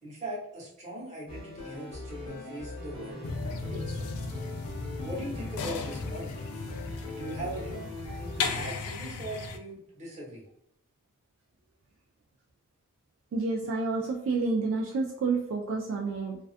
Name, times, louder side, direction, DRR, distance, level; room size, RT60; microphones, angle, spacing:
voice 1, 0.0-4.0 5.0-6.3 7.2-7.8 8.1-10.4, right 1 dB, 30° right, -5 dB, 1.0 m, -40 dB
sound 1, 1.3-8.7, left 2 dB, 25° left, 0.8 m, -41 dB
sound 2, 3.2-9.6, left 4 dB, 75° left, 0.3 m, -36 dB
voice 2, 13.3-16.4, right 3 dB, 60° right, -1 dB, 0.3 m, -29 dB
2.3 x 2.3 x 2.4 m, 0.75 s
head